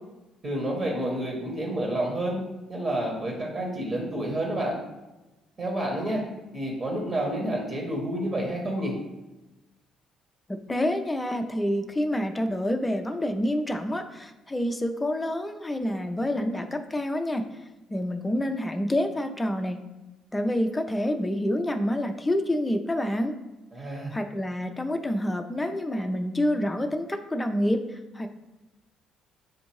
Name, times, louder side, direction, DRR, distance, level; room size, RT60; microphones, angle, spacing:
voice 1, 0.4-2.4 2.7-4.8 5.6-6.2 6.5-8.9 23.7-24.1, right 1 dB, 35° right, -1 dB, 1.1 m, -29 dB
voice 2, 10.5-19.8 20.3-23.4 24.1-28.3, left 1 dB, 15° left, 5 dB, 0.5 m, -28 dB
6.4 x 2.6 x 3.1 m, 1.0 s
hypercardioid pair, 50°, 0 cm